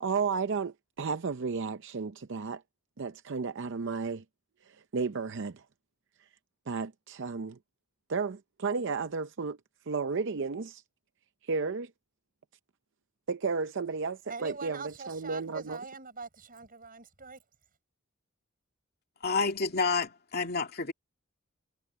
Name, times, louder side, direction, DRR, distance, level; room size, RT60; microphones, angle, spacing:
voice 1, 0.0-2.6 3.0-4.2 4.9-5.6 6.7-7.6 8.1-9.6 9.9-10.8 11.5-11.9 13.3-15.8, right 4 dB, 60° right, 0.6 m, -33 dB
voice 2, 14.3-17.4, right 4 dB, 45° right, 6.6 m, -43 dB
voice 3, 19.2-20.9, left 4 dB, 50° left, 2.3 m, -29 dB
head